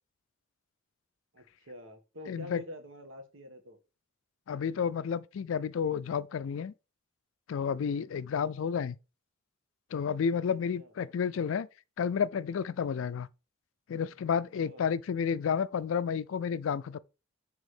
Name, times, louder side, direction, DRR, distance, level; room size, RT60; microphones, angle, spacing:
voice 1, 1.3-3.8 8.6-8.8 10.8-10.9 14.6-14.9, left 1 dB, 65° right, 1.5 m, -47 dB
voice 2, 2.3-2.6 4.5-6.7 7.5-9.0 9.9-11.7 12.0-13.3 13.9-17.0, left 7 dB, 65° left, 0.3 m, -31 dB
6.3 x 3.6 x 4.9 m
head